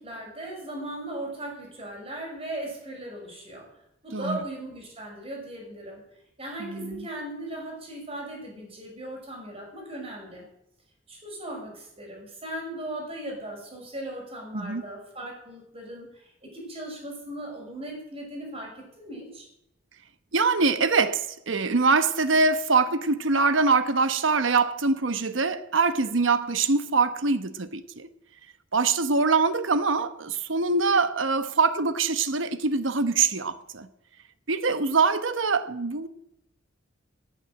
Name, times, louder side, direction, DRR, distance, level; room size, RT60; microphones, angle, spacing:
voice 1, 0.0-3.7 4.0-6.0 6.4-10.5 11.1-19.5, right 1 dB, 30° right, 6.2 m, -38 dB
voice 2, 6.6-7.1 14.5-14.8 20.3-28.1 28.7-33.9 34.5-36.1, right 4 dB, 80° right, 1.1 m, -24 dB
17.5 x 9.0 x 7.6 m
head